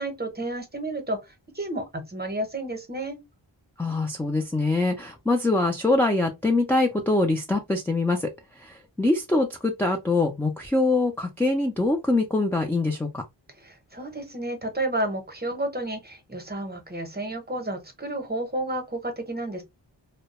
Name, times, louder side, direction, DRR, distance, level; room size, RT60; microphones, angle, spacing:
voice 1, 0.0-3.2 13.6-19.6, right 1 dB, 20° right, 0.8 m, -31 dB
voice 2, 3.8-8.3 8.6-13.2, left 2 dB, 5° left, 0.3 m, -24 dB
2.2 x 2.0 x 2.8 m
wide cardioid pair, 65°, 45 cm